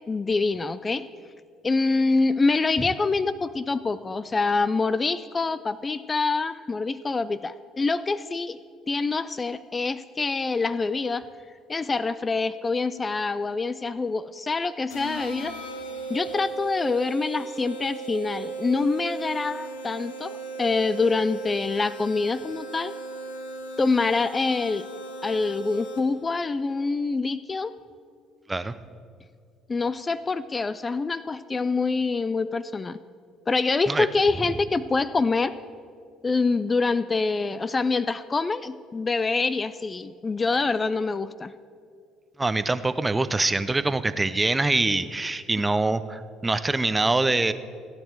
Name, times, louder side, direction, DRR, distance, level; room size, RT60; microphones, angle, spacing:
voice 1, 0.1-1.1 1.6-8.6 8.9-11.3 11.7-15.6 16.1-22.9 23.8-24.8 25.2-27.7 29.7-33.0 33.5-35.5 36.2-41.5, left 3 dB, 30° left, 15 dB, 0.4 m, -25 dB
sound 1, 14.9-26.3, right 3 dB, 85° left, 1.3 m, -37 dB
voice 2, 42.4-47.5, right 2 dB, 20° right, 13 dB, 0.6 m, -24 dB
16.0 x 9.9 x 4.7 m, 2.3 s
hypercardioid pair, 60°, 0 cm